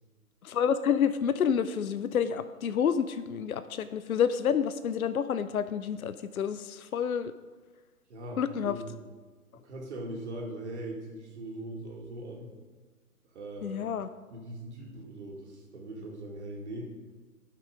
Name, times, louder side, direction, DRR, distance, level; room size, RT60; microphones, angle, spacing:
voice 1, 0.4-7.3 8.4-8.8 13.6-14.1, left 7 dB, 70° left, 12 dB, 0.6 m, -29 dB
voice 2, 8.1-9.0 9.6-12.5 13.3-13.9 14.3-16.9, right 1 dB, 50° right, -1 dB, 2.2 m, -40 dB
11.5 x 6.8 x 5.2 m, 1.3 s
figure-of-eight pair, 135°, 44 cm